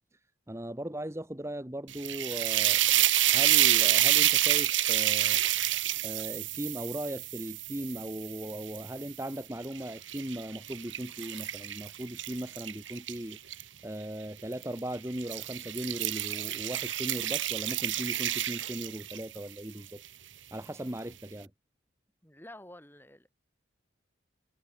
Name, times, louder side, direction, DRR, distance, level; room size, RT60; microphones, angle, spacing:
voice 1, 0.5-2.8 3.3-5.4 5.7-20.0 20.5-21.5, right 1 dB, 15° right, 1.4 m, -38 dB
sound 1, 1.9-9.1 9.6-13.6 14.5-14.8 15.2-19.4, right 13 dB, 70° right, 1.8 m, -28 dB
voice 2, 22.2-23.3, left 1 dB, 10° left, 7.5 m, -50 dB
head